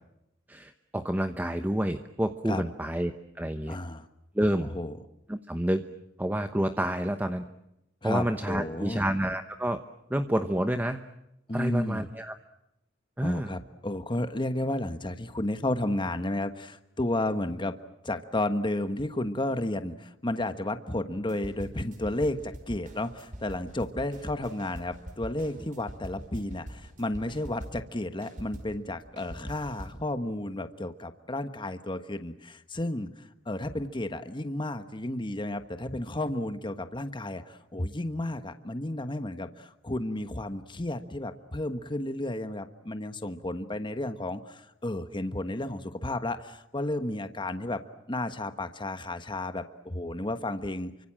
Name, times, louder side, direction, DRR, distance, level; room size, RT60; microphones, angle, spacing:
voice 1, 0.5-3.8 4.3-4.7 5.3-5.8 6.2-7.4 8.0-9.8 10.1-11.0 11.5-12.3 13.2-13.5, right 1 dB, 10° right, 8 dB, 0.9 m, -29 dB
voice 2, 3.7-4.1 4.6-4.9 8.0-9.1 11.5-12.1 13.2-17.7 18.0-47.8 48.1-50.9, left 1 dB, 25° left, 9 dB, 1.3 m, -32 dB
sound 1, 21.3-27.9 28.2-30.1, equal, 40° right, 5.1 m, -44 dB
29.5 x 25.0 x 7.6 m, 0.84 s
head